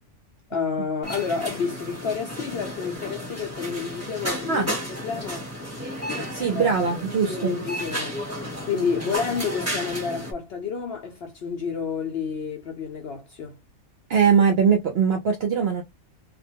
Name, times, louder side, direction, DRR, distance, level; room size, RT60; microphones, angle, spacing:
voice 1, 0.5-5.5 6.5-6.7 7.3-13.6, left 6 dB, 65° left, 0.6 m, -30 dB
sound 1, 1.0-10.3, equal, 10° right, 0.9 m, -33 dB
voice 2, 6.3-7.6 14.1-15.8, right 6 dB, 60° right, 0.7 m, -21 dB
2.4 x 2.1 x 2.7 m
omnidirectional pair, 1.5 m